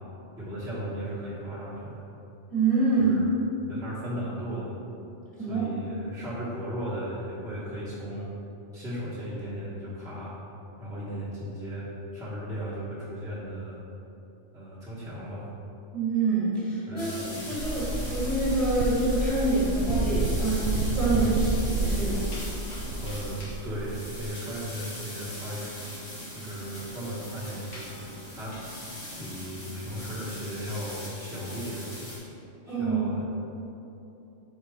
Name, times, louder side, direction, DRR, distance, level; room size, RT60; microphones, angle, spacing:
voice 1, 0.4-2.0 3.0-3.3 3.7-4.7 5.4-8.3 8.7-10.3 10.8-13.8 14.5-15.5 16.9-17.2 17.5-17.6 23.0-25.7 26.3-28.6 29.1-31.9 32.6-33.3, equal, 5° right, -11 dB, 1.2 m, -36 dB
voice 2, 2.5-3.2 5.4-5.7 15.9-22.2 32.7-33.0, right 3 dB, 30° right, -8 dB, 1.5 m, -26 dB
sound 1, 17.0-32.2, left 1 dB, 70° left, 2.0 m, -41 dB
sound 2, 17.6-24.3, right 2 dB, 65° right, 0.7 m, -30 dB
5.3 x 4.1 x 4.7 m, 2.9 s
omnidirectional pair, 1.3 m